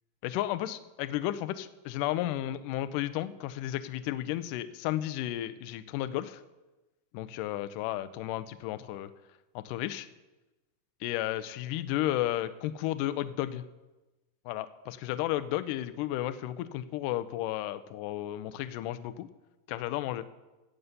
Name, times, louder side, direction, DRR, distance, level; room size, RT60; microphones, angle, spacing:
voice 1, 0.2-6.4 7.1-9.1 9.6-10.1 11.0-13.7 14.5-19.3 19.7-20.3, left 14 dB, 80° left, 12 dB, 2.0 m, -33 dB
15.5 x 5.5 x 8.1 m, 1.1 s
omnidirectional pair, 4.2 m